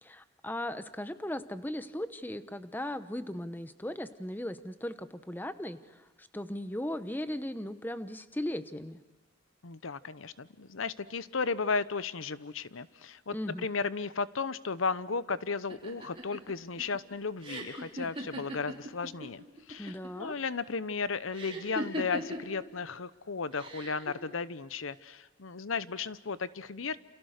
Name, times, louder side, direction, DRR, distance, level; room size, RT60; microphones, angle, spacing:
voice 1, 0.0-9.0 13.3-13.7 19.8-20.4, left 1 dB, 10° left, 12 dB, 0.9 m, -37 dB
voice 2, 9.6-13.3 13.6-19.4 19.7-27.0, left 4 dB, 90° left, 16 dB, 0.9 m, -34 dB
sound 1, 15.7-19.3 19.6-20.2 21.3-22.6 23.5-24.1, equal, 30° right, 5.2 m, -38 dB
29.0 x 29.0 x 6.6 m, 1.1 s
head